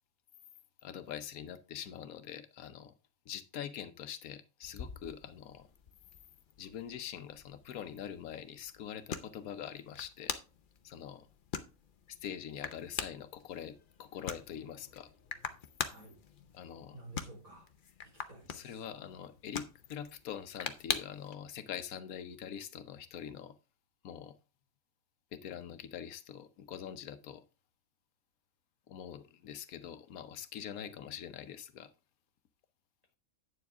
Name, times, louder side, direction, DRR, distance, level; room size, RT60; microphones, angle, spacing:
voice 1, 0.8-2.9 3.3-5.7 6.6-10.3 10.8-11.3 12.1-15.1 16.5-17.0 18.5-23.6 24.0-24.4 25.3-27.4 28.9-31.9, left 9 dB, 85° left, 1.2 m, -44 dB
sound 1, 4.6-21.4, left 6 dB, 45° left, 0.7 m, -44 dB
voice 2, 15.8-16.2 16.9-17.7 18.0-18.7 30.7-30.9, right 2 dB, 75° right, 4.7 m, -52 dB
9.1 x 7.1 x 3.6 m
omnidirectional pair, 1.5 m